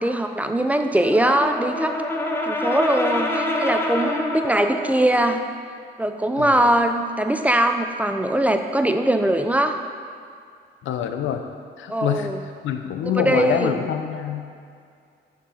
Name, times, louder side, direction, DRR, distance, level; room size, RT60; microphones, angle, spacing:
voice 1, 0.0-1.9 2.5-5.4 6.0-9.8 11.9-12.4 13.0-13.8, right 1 dB, 5° right, 6 dB, 0.4 m, -21 dB
Brass instrument, 0.9-5.1, left 1 dB, 10° left, 0.8 m, -26 dB
voice 2, 6.4-6.7 10.8-11.4 11.8-12.3 12.6-14.5, left 9 dB, 75° left, 6 dB, 0.6 m, -25 dB
5.7 x 4.6 x 5.7 m, 2.3 s
cardioid pair, 90°, 20 cm